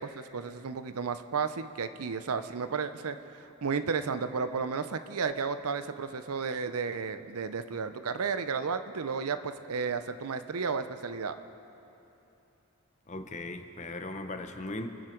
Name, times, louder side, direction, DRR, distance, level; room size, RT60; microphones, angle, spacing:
voice 1, 0.0-11.4, right 5 dB, 85° right, 11 dB, 0.7 m, -33 dB
voice 2, 13.1-14.9, left 2 dB, 30° left, 7 dB, 0.8 m, -38 dB
26.0 x 10.0 x 4.5 m, 2.9 s
head